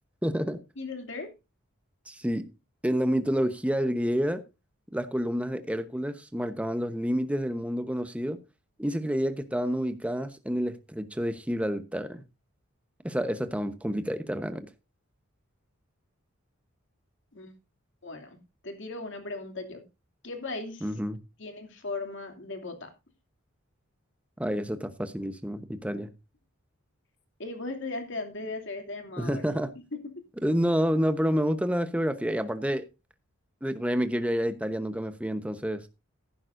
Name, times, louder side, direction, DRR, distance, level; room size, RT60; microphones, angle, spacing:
voice 1, 0.2-0.6 2.1-2.4 2.8-4.4 4.9-8.4 8.8-12.2 13.0-14.7 20.8-21.2 24.4-26.1 29.2-29.7 30.4-32.8 33.6-35.9, equal, 5° right, 1.0 m, -29 dB
voice 2, 0.8-1.3 17.3-17.5 18.0-18.4 18.6-19.8 20.2-20.9 21.4-22.9 27.4-29.5, left 3 dB, 60° left, 2.7 m, -37 dB
14.5 x 11.0 x 2.6 m
head